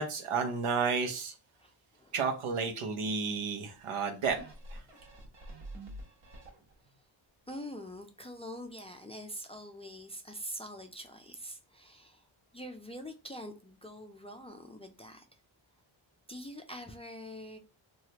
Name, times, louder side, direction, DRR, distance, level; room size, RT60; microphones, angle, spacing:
voice 1, 0.0-1.3 2.1-4.4 4.7-4.8, right 5 dB, 85° right, 0.9 m, -31 dB
voice 2, 1.6-2.1 7.5-12.3 12.5-15.3 16.3-17.6, equal, 15° left, 0.3 m, -44 dB
sound 1, 4.3-7.0 7.5-7.6, right 1 dB, 65° right, 1.1 m, -47 dB
3.1 x 2.4 x 2.8 m
wide cardioid pair, 110°, 49 cm